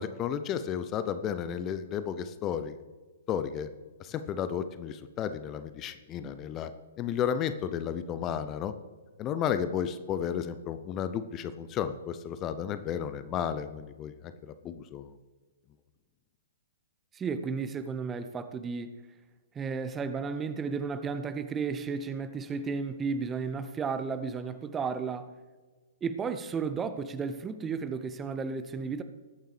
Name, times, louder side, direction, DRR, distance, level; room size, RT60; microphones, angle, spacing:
voice 1, 0.0-2.8 3.3-3.7 4.0-6.7 7.0-8.7 9.2-14.1 14.5-15.1, left 8 dB, 25° left, 12 dB, 0.6 m, -33 dB
voice 2, 17.1-18.9 19.5-25.3 26.0-29.0, right 5 dB, 15° right, 10 dB, 0.7 m, -33 dB
21.0 x 9.0 x 3.4 m, 1.4 s
figure-of-eight pair, 120°, 0 cm